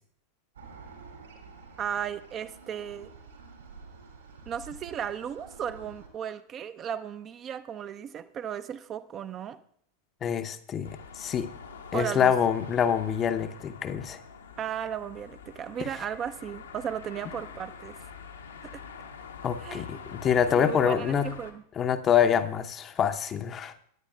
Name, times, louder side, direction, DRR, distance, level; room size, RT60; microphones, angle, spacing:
sound 1, 0.6-6.1, right 4 dB, 70° right, 2.7 m, -49 dB
voice 1, 1.8-3.1 4.5-9.6 11.9-12.4 14.6-18.0 18.6-18.8 19.6-20.0 20.6-21.6, right 8 dB, 30° right, 12 dB, 0.5 m, -35 dB
voice 2, 10.2-11.5 11.9-14.2 15.8-15.9 19.4-21.3 21.8-23.7, left 8 dB, 25° left, 10 dB, 0.7 m, -26 dB
sound 2, 10.8-21.5, left 6 dB, 70° left, 1.0 m, -45 dB
17.0 x 9.7 x 2.3 m, 0.63 s
figure-of-eight pair, 90°, 0 cm